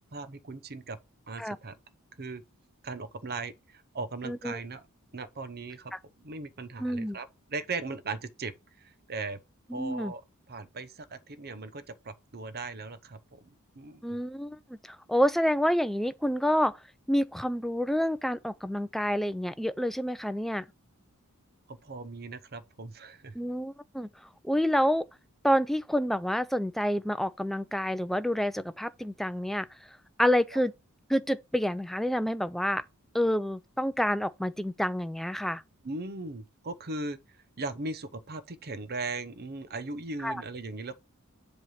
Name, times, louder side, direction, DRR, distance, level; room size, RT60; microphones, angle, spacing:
voice 1, 0.1-1.0 1.3-1.7 2.2-2.4 2.8-4.8 5.1-5.9 6.2-9.4 9.7-10.2 10.5-13.5 13.8-14.2 21.7-23.3 30.5-30.6 35.8-37.2 37.6-41.0, right 3 dB, 45° right, 0.8 m, -38 dB
voice 2, 4.2-4.6 5.9-6.0 6.8-7.2 9.7-10.1 14.0-14.6 14.9-16.7 17.1-20.7 23.4-24.1 24.4-25.0 25.4-29.7 30.2-30.7 31.1-32.8 33.1-35.6 40.2-40.4, equal, ahead, 0.3 m, -28 dB
7.6 x 3.2 x 5.6 m
head